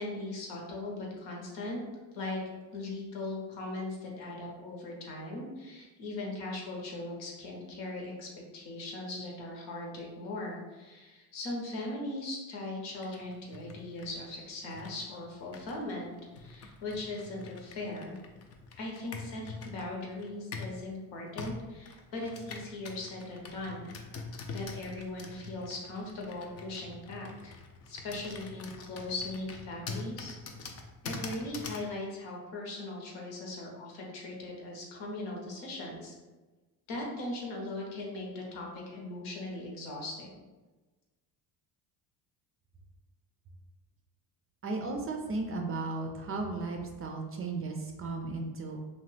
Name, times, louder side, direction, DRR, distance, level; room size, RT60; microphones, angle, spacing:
voice 1, 0.0-1.8 2.1-2.4 2.7-18.2 18.8-23.9 24.5-27.5 27.9-30.3 31.0-36.1 36.9-40.4, left 2 dB, 75° left, -1 dB, 0.9 m, -39 dB
Computer keyboard, 12.9-20.8 21.4-31.9, left 4 dB, 35° left, 0.4 m, -45 dB
voice 2, 44.6-48.8, right 3 dB, 30° right, 2 dB, 0.4 m, -35 dB
2.9 x 2.1 x 3.2 m, 1.2 s
supercardioid pair, 90°, 44 cm